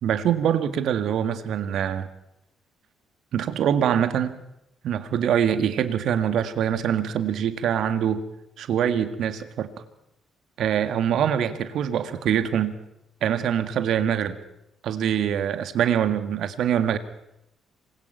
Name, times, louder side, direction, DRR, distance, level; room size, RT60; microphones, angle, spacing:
voice 1, 0.0-2.1 3.3-4.4 4.8-8.2 8.6-9.7 10.6-12.7 13.2-14.4 14.8-17.0, right 9 dB, 65° right, 10 dB, 1.8 m, -24 dB
27.0 x 22.0 x 5.8 m, 0.83 s
hypercardioid pair, 45°, 0 cm